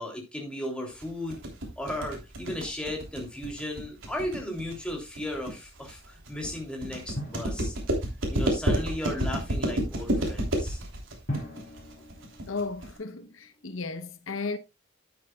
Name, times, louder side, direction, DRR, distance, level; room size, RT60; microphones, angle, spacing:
voice 1, 0.0-1.4 1.8-7.7 8.3-10.8, left 1 dB, 5° left, 3.0 m, -35 dB
sound 1, 1.0-13.0, right 1 dB, 75° right, 3.3 m, -30 dB
Drum, 7.2-8.7 11.3-13.4, equal, 45° left, 3.5 m, -40 dB
voice 2, 12.5-14.6, left 3 dB, 90° left, 0.9 m, -34 dB
12.0 x 9.3 x 2.3 m
head